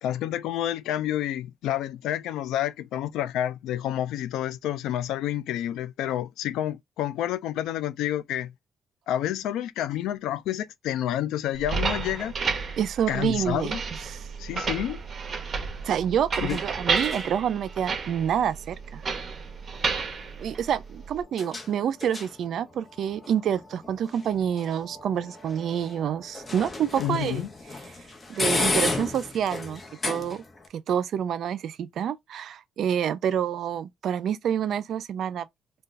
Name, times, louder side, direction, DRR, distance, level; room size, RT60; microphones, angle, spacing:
voice 1, 0.0-8.5 9.1-12.3 13.1-13.8 14.4-15.0 16.4-16.6 27.0-27.5, left 12 dB, 90° left, 0.3 m, -29 dB
sound 1, 11.5-21.2, right 5 dB, 40° right, 0.7 m, -31 dB
voice 2, 12.8-13.8 14.1-14.3 15.8-19.0 20.4-27.5 28.3-30.4 30.7-35.5, right 9 dB, 70° right, 0.4 m, -28 dB
sound 2, 13.2-30.7, left 2 dB, 30° left, 0.8 m, -36 dB
2.3 x 2.3 x 3.9 m
cardioid pair, 90°, 0 cm